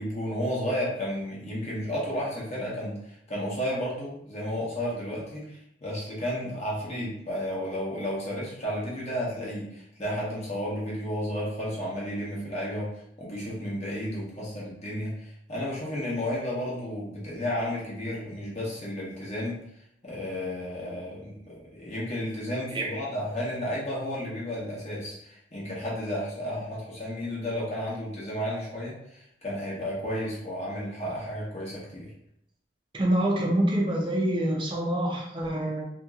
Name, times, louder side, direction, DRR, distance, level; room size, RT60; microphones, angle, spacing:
voice 1, 0.0-12.9 13.2-19.6 20.0-32.1, equal, 35° left, -6 dB, 0.9 m, -32 dB
voice 2, 32.9-35.8, right 1 dB, 25° right, -1 dB, 0.6 m, -26 dB
2.9 x 2.9 x 2.4 m, 0.75 s
head